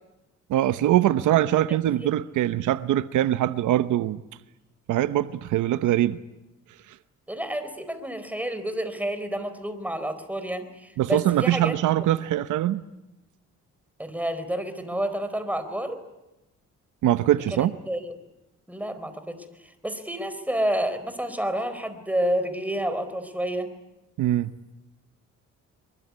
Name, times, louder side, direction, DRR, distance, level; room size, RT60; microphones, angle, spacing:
voice 1, 0.5-4.2 4.9-6.2 11.0-12.8 17.0-17.7 24.2-24.5, right 13 dB, 80° right, 0.9 m, -22 dB
voice 2, 1.7-2.1 7.3-11.8 14.0-16.0 17.6-18.1 18.7-23.7, right 1 dB, 5° right, 4.1 m, -29 dB
24.0 x 23.5 x 9.5 m
cardioid pair, 90°, 30 cm